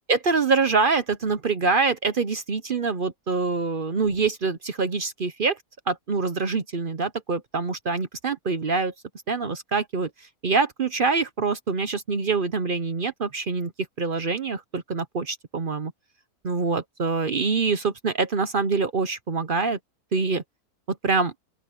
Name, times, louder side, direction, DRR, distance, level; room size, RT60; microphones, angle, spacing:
voice 1, 0.1-5.6 5.9-8.9 9.3-13.7 14.0-15.9 16.4-19.8 20.1-20.4 20.9-21.3, right 4 dB, 45° right, 0.8 m, -25 dB
open air
omnidirectional pair, 1.6 m